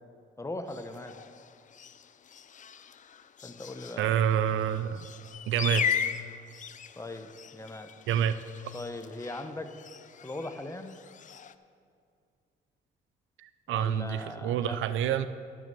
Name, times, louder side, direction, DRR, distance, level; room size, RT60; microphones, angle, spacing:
voice 1, 0.4-1.2 3.4-4.3 5.7-5.9 6.9-7.9 8.7-9.7 10.2-11.0 13.7-14.8, left 2 dB, 15° left, 8 dB, 0.8 m, -40 dB
sound 1, 0.7-11.6, left 8 dB, 40° left, 0.5 m, -38 dB
voice 2, 4.0-5.1 5.5-5.9 8.1-8.4 13.4-15.3, right 9 dB, 80° right, 13 dB, 0.5 m, -27 dB
12.0 x 6.3 x 6.8 m, 2.3 s
cardioid pair, 90°, 20 cm